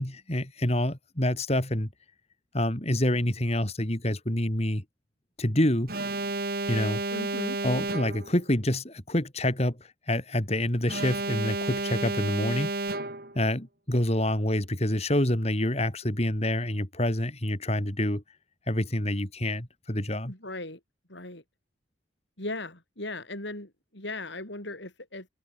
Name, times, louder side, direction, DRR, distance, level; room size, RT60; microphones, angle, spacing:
voice 1, 0.0-1.9 2.5-4.8 5.4-5.9 6.7-7.0 7.6-12.7 13.3-18.2 18.7-20.3, left 1 dB, 30° left, 3.1 m, -27 dB
Alarm, 5.9-8.4 10.9-13.4, right 2 dB, 50° right, 6.6 m, -31 dB
voice 2, 7.1-7.6 20.3-20.8 21.1-21.4 22.4-25.3, left 2 dB, 65° left, 6.1 m, -37 dB
head